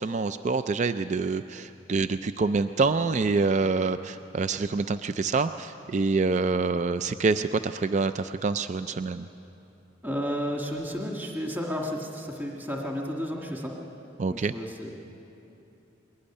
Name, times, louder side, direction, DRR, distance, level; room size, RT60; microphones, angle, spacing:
voice 1, 0.0-9.3 14.2-14.5, right 4 dB, 40° right, 11 dB, 0.4 m, -26 dB
voice 2, 10.0-13.8 14.3-14.9, equal, 10° right, 0 dB, 1.7 m, -32 dB
21.5 x 17.5 x 9.9 m, 2.9 s
head